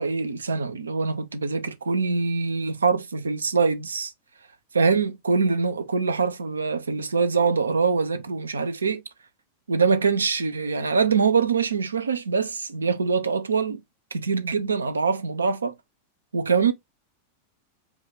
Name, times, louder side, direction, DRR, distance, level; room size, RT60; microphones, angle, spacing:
voice 1, 0.0-4.1 4.7-9.0 9.7-13.8 14.1-15.7 16.3-16.7, right 5 dB, 75° right, 0.6 m, -24 dB
5.1 x 2.4 x 3.4 m
figure-of-eight pair, 90°, 0 cm